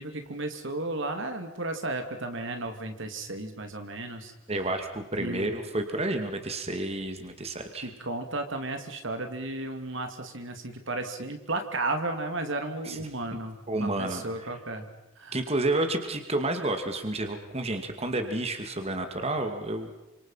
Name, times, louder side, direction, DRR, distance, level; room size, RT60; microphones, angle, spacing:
voice 1, 0.0-4.3 5.2-5.5 7.7-14.9 15.2-15.3, right 2 dB, 65° right, 6 dB, 2.7 m, -34 dB
voice 2, 4.5-7.9 12.8-13.0 13.7-14.6 15.3-19.9, right 2 dB, 30° right, 6 dB, 2.3 m, -30 dB
28.5 x 26.5 x 5.8 m, 0.94 s
head